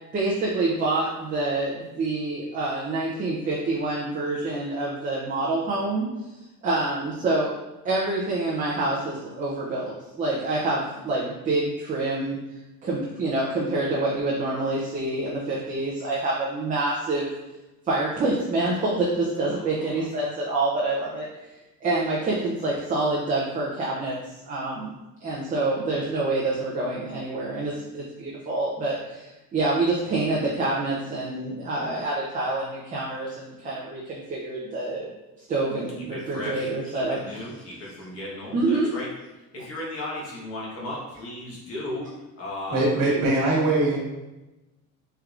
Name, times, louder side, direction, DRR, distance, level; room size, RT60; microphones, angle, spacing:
voice 1, 0.1-6.1 6.6-7.5 7.8-12.4 12.8-17.3 17.9-21.3 21.8-24.2 24.4-24.9 25.2-35.1 35.4-37.4 38.5-38.9, right 2 dB, 25° right, -5 dB, 0.5 m, -27 dB
voice 2, 19.5-20.0 35.9-39.1 39.5-42.1 42.4-43.2, left 1 dB, 45° left, -4 dB, 1.2 m, -36 dB
voice 3, 42.7-44.0, right 2 dB, 70° right, -3 dB, 1.3 m, -21 dB
4.5 x 3.4 x 2.4 m, 1.0 s
cardioid pair, 170°, 35 cm